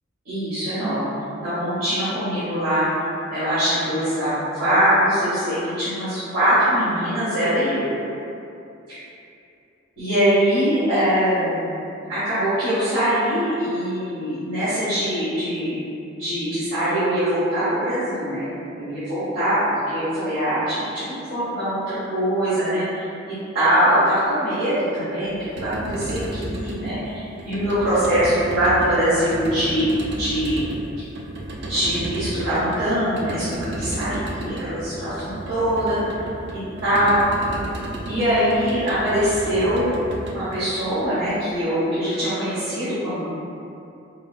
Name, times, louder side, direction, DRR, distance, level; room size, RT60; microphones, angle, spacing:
voice 1, 0.2-2.9 3.3-7.9 8.9-9.0 10.0-11.8 12.1-15.8 16.1-18.5 18.8-30.6 31.7-36.0 36.5-37.2 38.0-39.9 40.3-43.3, equal, 75° right, -16 dB, 1.4 m, -22 dB
sound 1, 25.3-41.5, right 1 dB, 55° right, 0.4 m, -33 dB
5.0 x 2.1 x 2.2 m, 2.7 s
head